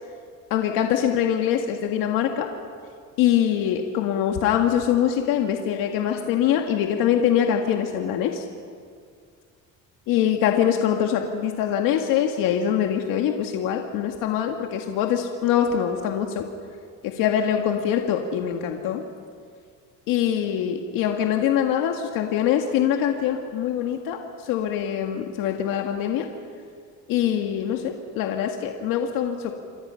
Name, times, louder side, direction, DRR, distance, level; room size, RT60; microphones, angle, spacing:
voice 1, 0.5-2.5 3.2-8.5 10.1-16.4 17.0-19.0 20.1-26.3 27.1-29.5, left 9 dB, 85° left, 3 dB, 1.9 m, -23 dB
28.5 x 25.0 x 5.8 m, 2.1 s
cardioid pair, 130°, 33 cm